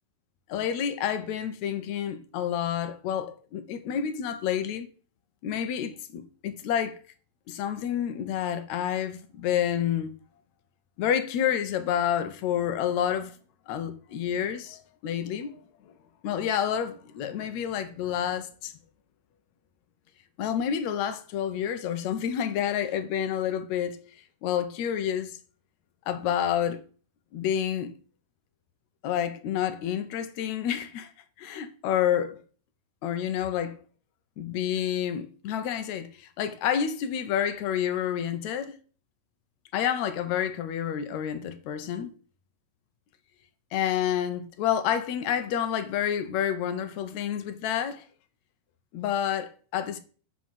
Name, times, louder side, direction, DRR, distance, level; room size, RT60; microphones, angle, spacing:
voice 1, 0.5-4.9 5.4-7.0 7.5-10.1 11.0-13.3 13.7-15.6 16.2-18.7 20.4-24.0 24.4-25.4 26.1-26.8 27.3-27.9 29.0-31.1 31.4-32.4 33.0-33.8 34.4-38.8 39.7-42.1 43.7-48.1 48.9-50.0, left 9 dB, 75° left, 1.7 m, -29 dB
7.0 x 5.8 x 7.4 m
omnidirectional pair, 4.2 m